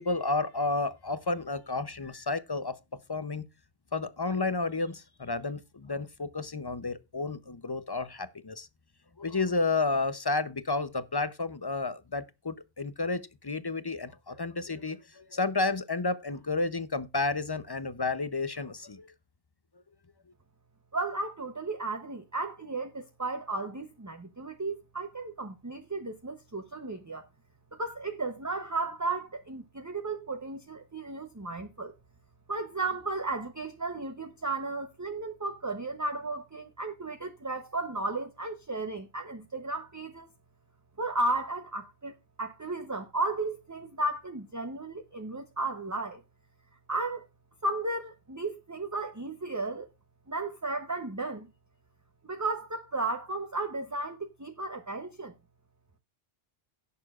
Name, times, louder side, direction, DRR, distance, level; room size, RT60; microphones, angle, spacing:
voice 1, 0.0-2.8 3.1-3.5 3.9-8.7 9.2-19.1, left 3 dB, 30° left, 0.5 m, -31 dB
voice 2, 20.9-27.3 27.7-31.9 32.5-40.3 41.0-42.1 42.4-46.2 46.9-47.3 47.6-49.9 50.3-51.5 52.2-55.3, right 2 dB, 20° right, 0.7 m, -34 dB
17.0 x 6.8 x 2.4 m
omnidirectional pair, 1.0 m